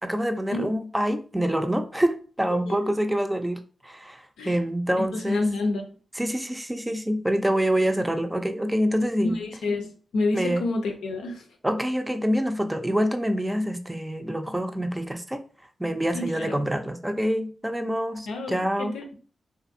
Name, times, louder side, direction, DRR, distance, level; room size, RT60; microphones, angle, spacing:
voice 1, 0.0-5.5 6.2-9.4 10.3-10.7 11.6-15.4 15.8-18.9, equal, 15° right, 7 dB, 0.5 m, -26 dB
voice 2, 5.0-5.8 9.2-11.4 16.1-16.5 18.3-19.1, left 2 dB, 85° left, 3 dB, 0.5 m, -29 dB
2.5 x 2.4 x 2.6 m, 0.39 s
supercardioid pair, 40°, 0 cm